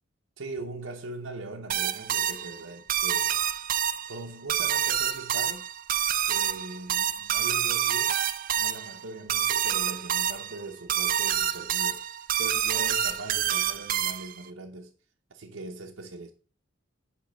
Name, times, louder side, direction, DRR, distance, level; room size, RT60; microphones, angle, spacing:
voice 1, 0.4-3.4 4.1-5.7 6.2-8.2 8.6-14.9 15.3-16.3, right 2 dB, 85° right, 0.8 m, -40 dB
sound 1, 1.7-14.5, right 10 dB, 45° right, 0.4 m, -27 dB
8.3 x 3.2 x 6.2 m
head